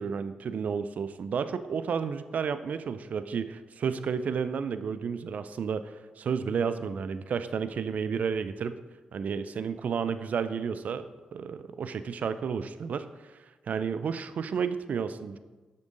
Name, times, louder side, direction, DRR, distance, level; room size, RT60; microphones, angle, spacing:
voice 1, 0.0-8.8 9.1-11.1 11.3-15.4, right 6 dB, 60° right, 12 dB, 0.4 m, -32 dB
7.5 x 6.3 x 3.9 m, 1.3 s
supercardioid pair, 45°, 3 cm